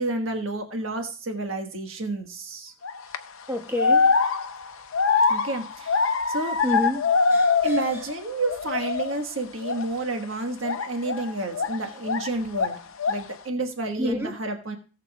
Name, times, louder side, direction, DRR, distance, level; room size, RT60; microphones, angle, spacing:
voice 1, 0.0-2.7 5.3-6.6 7.6-12.8 13.1-14.8, right 2 dB, 75° right, 1.4 m, -30 dB
sound 1, 2.8-3.2 3.8-8.1 8.4-9.2 9.6-9.9 10.6-12.3 12.5-13.3, left 4 dB, 80° left, 0.6 m, -23 dB
voice 2, 3.5-4.2 6.6-7.8 14.0-14.3, left 1 dB, 10° right, 1.0 m, -29 dB
18.5 x 7.5 x 2.3 m
head